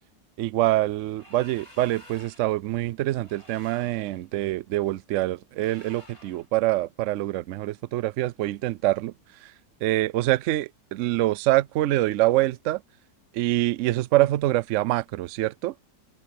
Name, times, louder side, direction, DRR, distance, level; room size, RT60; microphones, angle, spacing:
voice 1, 0.4-9.1 9.4-9.5 9.8-12.8 13.3-15.7, right 16 dB, 90° right, 0.6 m, -25 dB
sound 1, 1.1-2.6 3.2-4.2 5.6-6.5, left 1 dB, 15° left, 3.3 m, -51 dB
omnidirectional pair, 1.9 m